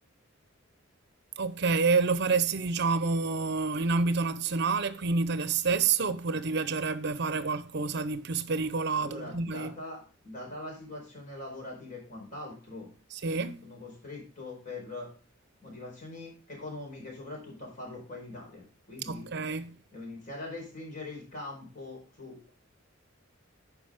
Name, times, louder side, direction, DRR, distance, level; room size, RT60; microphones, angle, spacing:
voice 1, 1.4-9.7 13.1-13.6 19.1-19.7, right 4 dB, 55° right, 0.7 m, -28 dB
voice 2, 9.0-12.9 13.6-15.1 15.6-19.3 19.9-22.5, left 2 dB, 40° left, 4.5 m, -42 dB
11.5 x 5.0 x 4.9 m
head